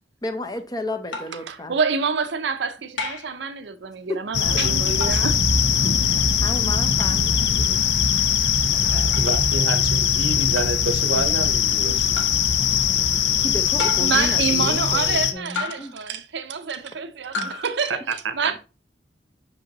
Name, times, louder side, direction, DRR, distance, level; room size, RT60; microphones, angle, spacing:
voice 1, 0.2-1.8 4.1-4.2 5.8-7.8 13.4-15.9 17.3-17.5, left 1 dB, 20° left, 0.6 m, -33 dB
sound 1, 1.1-1.4 3.0-3.4 5.0-5.3 7.0-7.2 9.1-9.3 10.6-10.8 12.2-12.4 13.8-14.3 15.6-16.0 17.3-17.6, left 3 dB, 80° left, 1.4 m, -31 dB
voice 2, 1.5-5.4 14.0-18.6, right 5 dB, 65° right, 0.6 m, -27 dB
sound 2, 4.3-15.3, left 7 dB, 65° left, 0.6 m, -21 dB
sound 3, 5.3-7.8, equal, 25° right, 0.7 m, -32 dB
voice 3, 8.7-12.1 18.1-18.5, right 3 dB, 85° right, 0.9 m, -28 dB
6.2 x 5.2 x 2.9 m
head